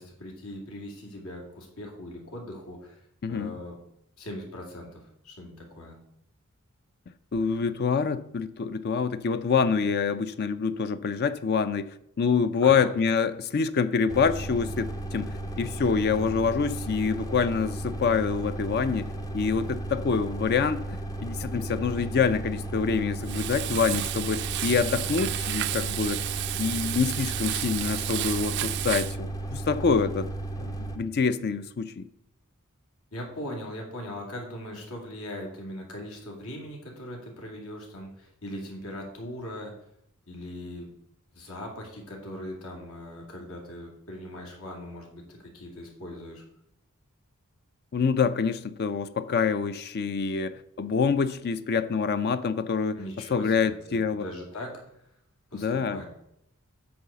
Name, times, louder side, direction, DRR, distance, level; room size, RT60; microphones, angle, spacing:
voice 1, 0.0-3.8 4.2-6.0 12.6-12.9 33.1-39.7 40.3-40.9 41.3-46.4 52.9-54.7 55.5-56.1, left 1 dB, 80° left, 2.5 m, -40 dB
voice 2, 3.2-3.5 7.3-20.8 21.2-26.3 26.6-30.3 30.6-32.1 47.9-53.0 53.3-54.2 55.5-56.0, left 5 dB, 50° left, 0.4 m, -26 dB
sound 1, 14.1-31.0, right 2 dB, 15° left, 0.7 m, -34 dB
Frying (food), 23.2-29.2, right 14 dB, 50° right, 0.3 m, -32 dB
8.7 x 4.0 x 6.8 m
head